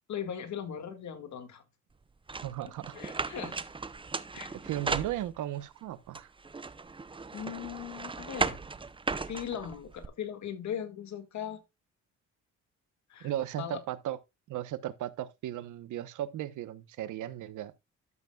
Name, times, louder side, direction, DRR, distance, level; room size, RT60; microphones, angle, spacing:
voice 1, 0.1-1.6 2.6-3.6 4.3-4.5 7.3-8.6 9.3-11.6 13.1-13.8, left 9 dB, 65° left, 2.0 m, -39 dB
sound 1, 2.3-5.6 6.1-10.1, right 4 dB, 15° right, 0.6 m, -36 dB
voice 2, 2.4-2.9 4.6-6.3 13.2-14.2 14.5-17.7, right 12 dB, 80° right, 1.0 m, -36 dB
12.0 x 7.8 x 2.3 m
cardioid pair, 90°, 30 cm